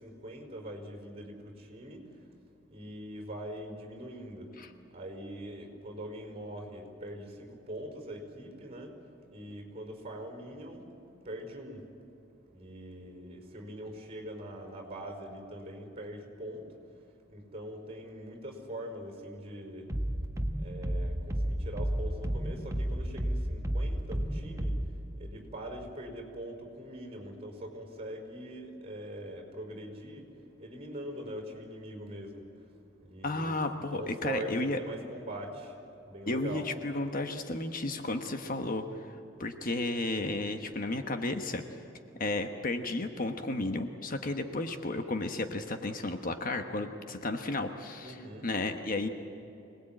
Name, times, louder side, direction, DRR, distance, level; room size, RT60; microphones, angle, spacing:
voice 1, 0.0-2.3 2.7-4.5 4.9-9.0 9.3-10.9 11.2-11.8 12.5-16.7 17.3-19.9 20.6-24.8 25.2-30.2 30.6-32.5 33.0-35.8 36.1-36.7 48.0-48.5, right 1 dB, 30° right, 3 dB, 4.9 m, -42 dB
sound 1, 19.9-24.9, equal, 15° right, 1.3 m, -32 dB
voice 2, 33.2-34.8 36.3-41.6 42.2-49.1, left 2 dB, 45° left, 6 dB, 1.2 m, -33 dB
25.5 x 19.5 x 8.9 m, 3.0 s
head